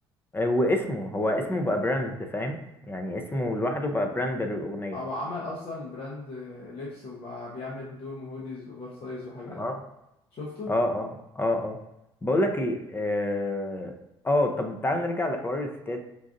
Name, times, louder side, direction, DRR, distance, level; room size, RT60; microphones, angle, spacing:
voice 1, 0.3-5.0 9.5-9.8 10.7-11.1 11.4-11.8 12.2-13.9 14.2-16.0, left 1 dB, 15° left, 4 dB, 0.7 m, -27 dB
voice 2, 4.9-9.6 10.3-10.7, left 2 dB, 45° left, -5 dB, 1.0 m, -37 dB
5.2 x 2.4 x 2.5 m, 0.88 s
hypercardioid pair, 60°, 13 cm